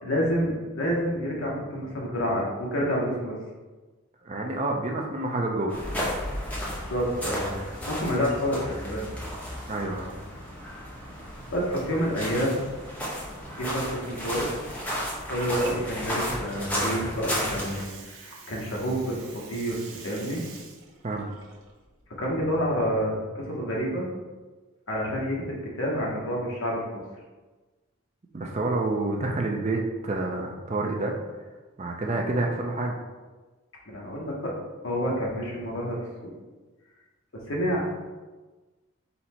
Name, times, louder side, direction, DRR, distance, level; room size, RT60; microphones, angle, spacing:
voice 1, 0.0-3.4 6.9-9.1 11.5-12.6 13.5-14.5 15.3-20.4 22.2-24.1 24.9-27.0 33.9-34.5 34.8-36.3 37.3-37.9, equal, 65° left, -3 dB, 1.1 m, -28 dB
voice 2, 4.2-5.8 9.7-10.1 21.0-21.3 28.3-31.1 31.8-33.0, right 2 dB, 30° right, 1 dB, 0.4 m, -28 dB
sound 1, 5.7-17.8, equal, 5° left, 0.8 m, -33 dB
Water, 15.3-22.9, right 4 dB, 75° right, 0.8 m, -46 dB
4.2 x 2.8 x 4.2 m, 1.3 s
head